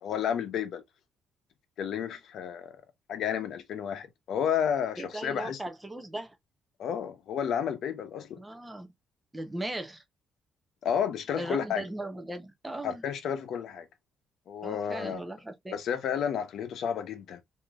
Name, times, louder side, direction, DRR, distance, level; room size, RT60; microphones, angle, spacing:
voice 1, 0.0-0.8 1.8-2.7 3.1-5.6 6.8-8.4 10.8-11.8 12.8-13.9 14.5-15.2 15.7-17.4, left 8 dB, 60° left, 0.8 m, -31 dB
voice 2, 5.0-6.3 8.4-8.9 9.3-10.0 11.3-13.0 14.6-15.8, right 1 dB, 10° right, 0.6 m, -38 dB
3.4 x 2.7 x 2.3 m
cardioid pair, 165°, 0 cm